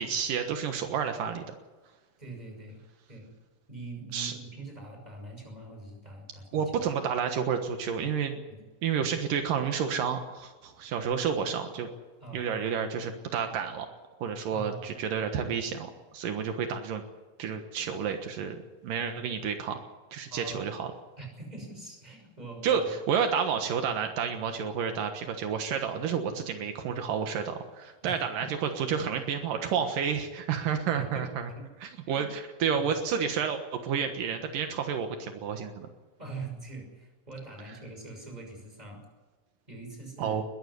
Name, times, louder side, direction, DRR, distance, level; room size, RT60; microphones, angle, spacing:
voice 1, 0.0-1.5 4.1-4.3 6.5-8.4 8.8-11.9 12.3-13.9 14.2-17.0 17.4-19.8 20.1-20.9 22.6-31.5 31.8-35.9 40.2-40.4, right 7 dB, 80° right, 6 dB, 3.0 m, -30 dB
voice 2, 2.2-2.8 3.1-3.3 3.7-6.7 8.5-8.6 12.2-12.7 14.5-14.8 20.3-20.6 21.2-22.9 28.0-28.5 30.9-31.3 31.6-31.7 32.1-32.3 32.7-32.9 36.2-39.0 39.7-40.4, right 3 dB, 10° right, 3 dB, 6.2 m, -43 dB
21.5 x 14.0 x 9.8 m, 1.3 s
omnidirectional pair, 3.8 m